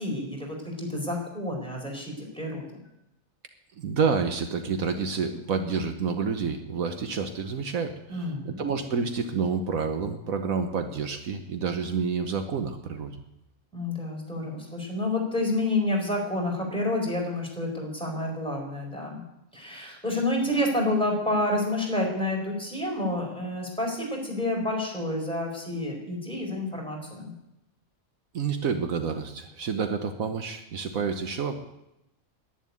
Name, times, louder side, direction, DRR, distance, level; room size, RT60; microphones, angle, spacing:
voice 1, 0.0-2.7 8.1-8.6 13.7-19.2 19.5-27.3, left 1 dB, 5° left, -1 dB, 4.5 m, -29 dB
voice 2, 3.8-13.2 28.3-31.6, right 5 dB, 75° right, 6 dB, 1.4 m, -29 dB
11.0 x 10.5 x 9.6 m, 0.88 s
omnidirectional pair, 1.5 m